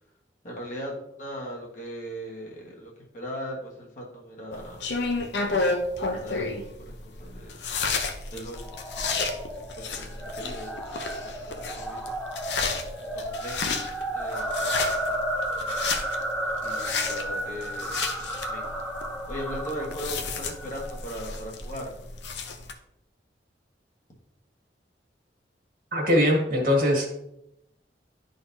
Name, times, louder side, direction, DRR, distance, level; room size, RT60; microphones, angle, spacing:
voice 1, 0.4-4.9 5.1-6.5 6.8-7.6 8.3-8.7 8.9-9.3 9.8-10.7 11.0-12.1 13.1-13.6 14.1-15.2 15.5-15.8 16.6-18.9 19.3-21.9, equal, 45° left, -2 dB, 1.4 m, -39 dB
sound 1, 4.5-22.7, left 4 dB, 75° left, 0.7 m, -32 dB
sound 2, 8.6-21.0, right 1 dB, 5° left, 0.8 m, -33 dB
voice 2, 25.9-27.1, left 1 dB, 50° right, 0 dB, 1.8 m, -21 dB
11.0 x 4.0 x 2.7 m, 0.81 s
head